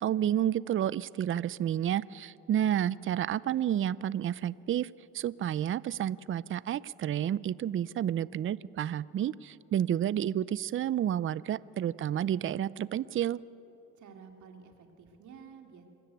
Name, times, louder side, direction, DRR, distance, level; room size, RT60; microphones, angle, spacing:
voice 1, 0.0-4.9 5.1-13.4, right 10 dB, 45° right, 20 dB, 0.5 m, -30 dB
voice 2, 13.9-15.9, right 6 dB, 75° right, 4 dB, 2.5 m, -51 dB
25.0 x 14.0 x 9.2 m, 2.9 s
cardioid pair, 90°, 30 cm